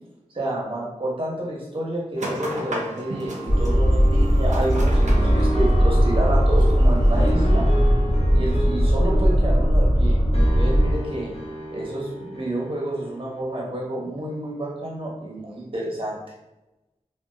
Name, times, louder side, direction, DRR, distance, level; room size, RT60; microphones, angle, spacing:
voice 1, 0.3-7.7 8.3-10.2 10.6-11.3 11.7-16.2, right 1 dB, 45° right, -4 dB, 0.9 m, -29 dB
sound 1, 2.2-7.9, right 1 dB, 80° right, 0.5 m, -33 dB
sound 2, 3.5-10.9, equal, 25° left, 1.3 m, -18 dB
sound 3, 4.8-13.4, equal, 55° left, 0.8 m, -33 dB
2.8 x 2.2 x 2.3 m, 0.95 s
wide cardioid pair, 40°, 12 cm